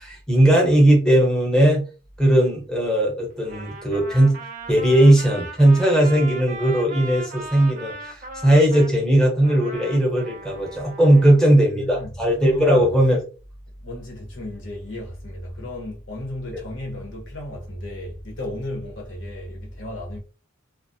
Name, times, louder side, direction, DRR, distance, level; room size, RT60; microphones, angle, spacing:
voice 1, 0.0-1.8 2.2-4.4 4.7-13.2, right 1 dB, 5° left, 0.7 m, -18 dB
Trumpet, 3.4-8.9 9.4-11.4, right 1 dB, 40° right, 0.5 m, -38 dB
voice 2, 11.1-12.9 13.8-20.2, left 1 dB, 70° left, 0.8 m, -34 dB
2.3 x 2.0 x 2.6 m
head